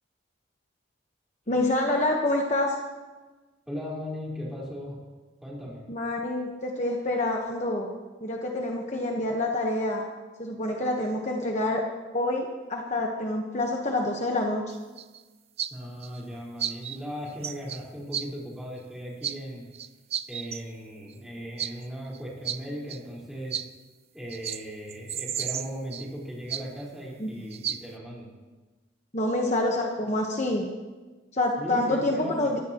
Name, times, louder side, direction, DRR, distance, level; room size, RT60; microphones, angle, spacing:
voice 1, 1.5-2.8 5.9-7.9 8.2-10.0 10.4-11.8 12.1-14.6 27.2-27.4 29.1-30.7 31.3-32.6, left 1 dB, 35° left, 0 dB, 1.2 m, -27 dB
voice 2, 3.7-5.0 5.4-5.8 15.7-19.7 20.3-23.6 24.1-28.3 31.6-32.5, equal, ahead, -6 dB, 4.5 m, -37 dB
sound 1, 14.7-15.2 15.6-15.7 16.0-16.2 16.6-17.0 17.3-17.8 18.1-18.3 19.2-19.4 19.7-20.6 21.1-21.2 21.6-21.7 22.1-22.2 22.4-22.6 22.9-23.0 23.5-23.6 24.3-24.6 24.9-26.1 26.5-26.8 27.5-27.8, right 9 dB, 30° right, 0.4 m, -32 dB
22.5 x 15.0 x 3.0 m, 1.3 s
head